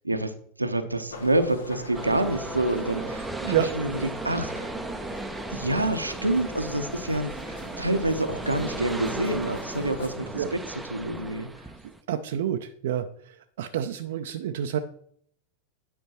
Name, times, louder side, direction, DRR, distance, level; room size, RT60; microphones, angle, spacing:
voice 1, 0.6-4.7 5.5-11.5, right 1 dB, 85° right, 8 dB, 0.8 m, -27 dB
sound 1, 1.1-10.1, left 2 dB, 70° left, 1.4 m, -42 dB
sound 2, 1.9-12.0, right 2 dB, 5° right, 0.6 m, -36 dB
voice 2, 12.1-14.8, right 10 dB, 55° right, 7 dB, 0.5 m, -28 dB
9.5 x 5.4 x 4.3 m, 0.63 s
figure-of-eight pair, 90°, 0 cm